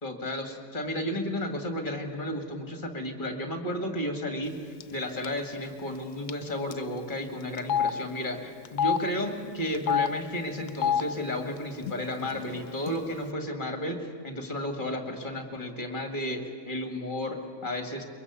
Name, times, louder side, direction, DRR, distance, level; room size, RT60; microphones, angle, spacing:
voice 1, 0.0-18.0, left 1 dB, 30° left, 6 dB, 2.3 m, -33 dB
Telephone, 4.8-5.0 5.2-5.4 6.3-6.4 6.7-6.8 7.6-7.9 8.6-9.0 9.7-10.1 10.7-11.0 11.8-11.9 12.2-12.9, left 8 dB, 80° left, 1.3 m, -26 dB
23.0 x 22.0 x 8.3 m, 2.3 s
omnidirectional pair, 1.6 m